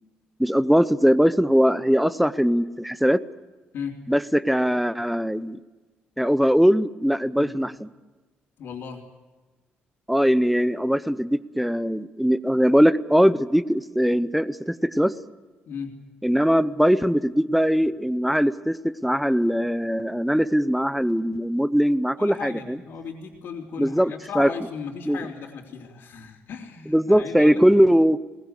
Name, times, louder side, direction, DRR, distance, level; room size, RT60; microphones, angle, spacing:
voice 1, 0.4-3.2 4.1-5.6 6.2-7.7 10.1-15.1 16.2-22.8 23.8-24.5 25.1-25.2 26.9-28.2, equal, ahead, 15 dB, 0.7 m, -21 dB
voice 2, 8.6-9.0 15.7-15.9 22.2-27.6, left 6 dB, 65° left, -4 dB, 3.7 m, -36 dB
23.0 x 19.5 x 8.3 m, 1.2 s
cardioid pair, 140°, 4 cm